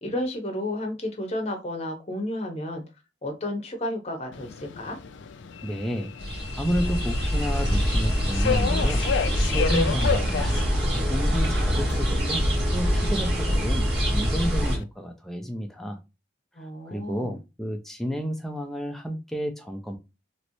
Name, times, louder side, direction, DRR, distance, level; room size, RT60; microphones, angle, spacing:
voice 1, 0.0-2.8 3.2-5.0 16.5-17.3, left 1 dB, 35° left, 0.8 m, -32 dB
Subway metro underground, 4.3-14.8, left 6 dB, 70° left, 0.4 m, -33 dB
voice 2, 5.6-9.0 9.4-10.7 11.1-12.4 12.7-16.0 16.9-20.0, equal, ahead, 0.4 m, -31 dB
sound 1, 6.2-14.8, equal, 55° right, 1.4 m, -24 dB
3.1 x 3.0 x 2.6 m
head